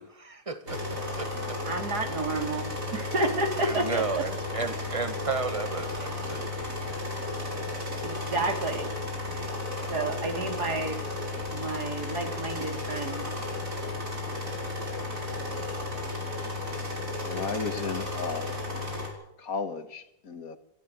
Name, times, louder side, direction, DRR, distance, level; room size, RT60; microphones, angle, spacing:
voice 1, 0.0-1.6 2.4-2.5 3.6-6.5, right 4 dB, 20° right, 1.8 m, -33 dB
sound 1, 0.7-19.1, left 2 dB, 55° right, 5.5 m, -34 dB
voice 2, 1.7-4.0 8.0-8.9 9.3-9.6 9.9-11.0 11.5-13.2, right 2 dB, 80° right, 3.8 m, -31 dB
voice 3, 17.2-18.5 19.4-20.6, left 5 dB, 65° left, 1.8 m, -34 dB
27.5 x 13.5 x 8.2 m
omnidirectional pair, 1.7 m